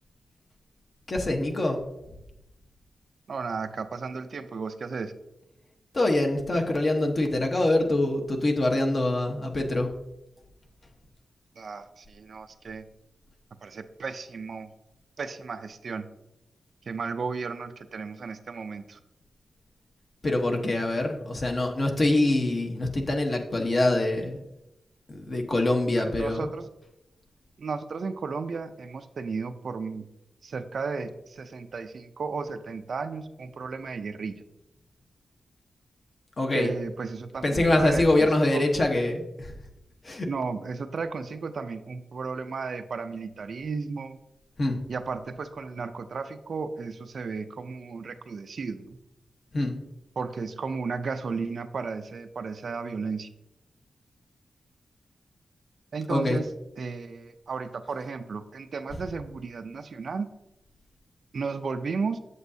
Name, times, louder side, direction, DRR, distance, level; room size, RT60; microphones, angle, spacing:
voice 1, 1.1-1.8 5.9-9.9 20.2-24.4 25.1-26.5 36.4-36.7 37.4-39.5 40.0-40.3 44.6-44.8 49.5-49.7 56.1-56.4, left 2 dB, 40° left, 2 dB, 1.1 m, -24 dB
voice 2, 3.3-5.1 11.6-12.8 13.6-14.7 15.2-16.1 16.9-19.0 26.2-26.7 27.6-30.0 30.4-34.4 36.5-38.7 40.3-44.2 44.9-49.0 50.2-53.3 55.9-56.5 56.8-60.3 61.3-62.2, right 4 dB, 60° right, 9 dB, 0.5 m, -34 dB
8.0 x 7.6 x 2.7 m, 0.89 s
wide cardioid pair, 120°, 0 cm